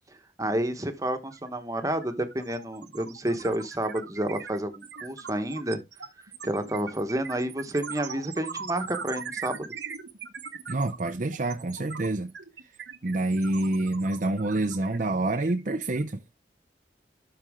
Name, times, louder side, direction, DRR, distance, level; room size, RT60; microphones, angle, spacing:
voice 1, 0.4-5.8 6.4-9.7, right 1 dB, 20° right, 1.2 m, -30 dB
sound 1, 1.3-1.5 1.8-16.1, right 6 dB, 80° right, 1.2 m, -41 dB
voice 2, 10.7-12.3 13.0-16.2, right 2 dB, 45° right, 0.6 m, -27 dB
12.5 x 4.3 x 3.6 m
head